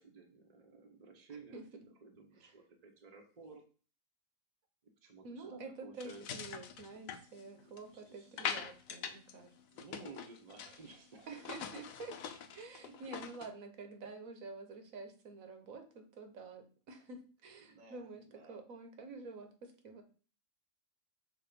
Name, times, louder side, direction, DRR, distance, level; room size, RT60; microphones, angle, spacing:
voice 1, 0.0-1.7 2.0-3.6 5.0-6.3 7.5-8.3 9.7-11.4 12.7-12.9 17.6-18.6, right 4 dB, 35° right, 3 dB, 1.1 m, -55 dB
voice 2, 5.2-9.6 11.3-12.2 12.5-20.0, right 3 dB, 85° right, 6 dB, 1.6 m, -49 dB
sound 1, 6.0-7.9 8.4-9.3 9.6-10.9 11.3-13.5, left 7 dB, 90° left, 1.1 m, -43 dB
6.6 x 3.7 x 5.1 m, 0.38 s
omnidirectional pair, 1.4 m